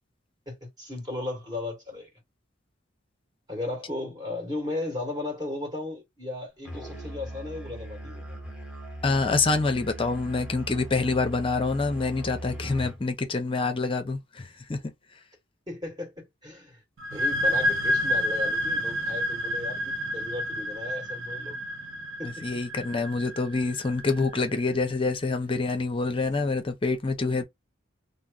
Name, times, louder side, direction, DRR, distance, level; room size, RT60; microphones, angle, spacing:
voice 1, 0.5-2.1 3.5-8.3 15.7-16.8 17.1-21.6 22.2-22.5, left 2 dB, 20° right, 1.9 m, -35 dB
Musical instrument, 6.7-13.0, right 1 dB, 5° right, 0.9 m, -39 dB
voice 2, 9.0-14.9 22.2-27.4, left 3 dB, 25° left, 0.6 m, -26 dB
sound 1, 17.0-24.4, left 1 dB, 80° right, 0.7 m, -29 dB
2.9 x 2.1 x 3.7 m
head